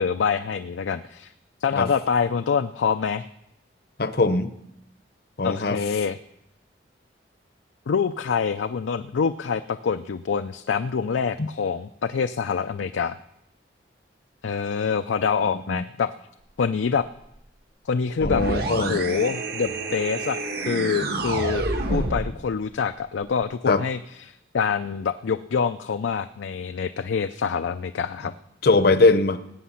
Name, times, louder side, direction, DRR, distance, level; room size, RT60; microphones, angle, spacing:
voice 1, 0.0-1.3 1.6-3.3 5.4-6.2 7.9-13.2 14.4-16.1 16.6-17.1 17.9-18.4 18.8-21.6 21.9-28.3, left 6 dB, 85° left, 9 dB, 0.4 m, -26 dB
voice 2, 4.0-4.5 5.4-5.8 11.4-11.5 15.7-15.8 18.2-19.0 23.7-23.8 28.6-29.4, left 3 dB, 55° left, 12 dB, 0.7 m, -20 dB
sound 1, 18.2-22.4, right 2 dB, 55° right, 1.4 m, -28 dB
18.5 x 8.5 x 5.7 m, 0.81 s
head